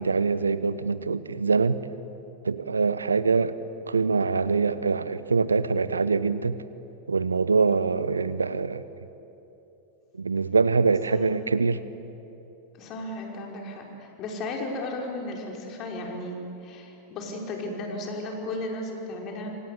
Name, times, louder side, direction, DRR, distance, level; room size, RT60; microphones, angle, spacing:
voice 1, 0.0-1.9 2.4-3.6 3.9-6.6 7.1-8.9 10.1-11.8, right 4 dB, 75° right, 16 dB, 1.0 m, -24 dB
voice 2, 12.8-19.5, left 1 dB, 35° left, 0 dB, 5.4 m, -35 dB
27.5 x 26.0 x 8.4 m, 3.0 s
figure-of-eight pair, 90°, 0 cm